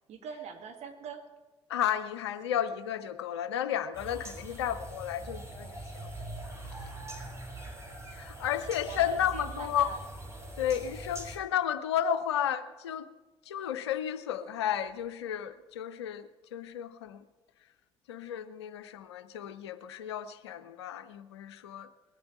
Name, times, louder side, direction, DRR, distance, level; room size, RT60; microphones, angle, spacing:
voice 1, 0.1-1.3 8.8-10.0, right 7 dB, 50° right, 4 dB, 1.8 m, -42 dB
voice 2, 1.7-6.1 6.7-6.9 8.1-9.9 10.6-13.1 13.5-17.2 18.1-21.9, left 10 dB, 75° left, 13 dB, 0.6 m, -33 dB
sound 1, 3.9-11.4, right 2 dB, 20° right, 3.2 m, -43 dB
20.0 x 8.6 x 5.9 m, 1.2 s
figure-of-eight pair, 50°, 14 cm